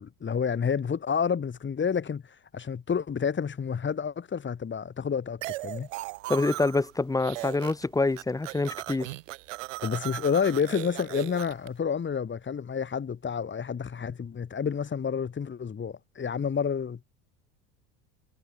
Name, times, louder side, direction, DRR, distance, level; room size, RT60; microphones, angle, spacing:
voice 1, 0.0-2.2 2.5-5.9 9.8-17.0, left 6 dB, 30° left, 6.5 m, -29 dB
sound 1, 5.4-6.9 7.2-11.7, right 20 dB, 75° right, 4.1 m, -37 dB
voice 2, 6.3-9.1, left 3 dB, 10° left, 1.0 m, -26 dB
hypercardioid pair, 80°, 38 cm